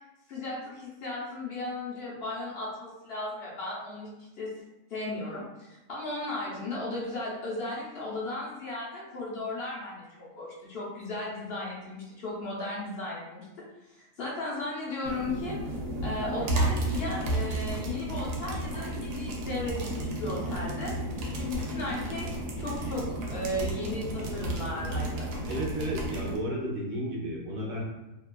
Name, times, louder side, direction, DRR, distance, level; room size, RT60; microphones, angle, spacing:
voice 1, 0.3-4.1 4.4-4.5 4.9-13.5 14.0-15.6 16.0-20.9 21.3-22.3 22.6-25.3, left 2 dB, 55° left, -5 dB, 0.7 m, -35 dB
sound 1, 15.0-26.4, right 1 dB, 90° right, 1.2 m, -32 dB
voice 2, 25.5-27.8, right 1 dB, 65° right, -4 dB, 1.1 m, -32 dB
2.8 x 2.3 x 2.2 m, 0.98 s
omnidirectional pair, 1.7 m